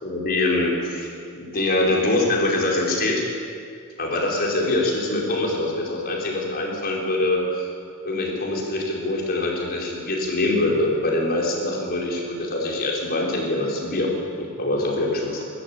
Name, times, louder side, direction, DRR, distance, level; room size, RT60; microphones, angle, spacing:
voice 1, 0.0-1.1 1.3-3.2 4.0-7.7 8.0-15.4, left 2 dB, 45° left, -2 dB, 4.7 m, -24 dB
23.0 x 13.5 x 8.8 m, 2.3 s
head